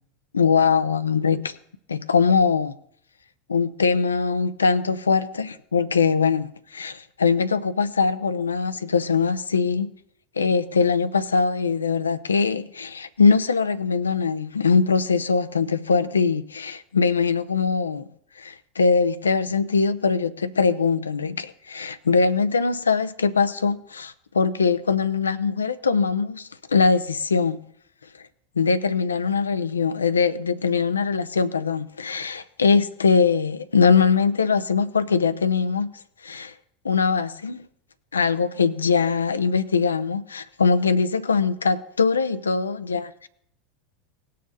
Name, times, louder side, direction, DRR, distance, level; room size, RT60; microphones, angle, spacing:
voice 1, 0.3-1.6 1.9-2.7 3.5-9.9 10.4-18.1 18.4-27.6 28.6-35.9 36.2-36.5 36.8-37.7 38.1-43.3, left 5 dB, 75° left, 0.6 m, -22 dB
18.5 x 6.6 x 4.1 m
figure-of-eight pair, 80°, 0 cm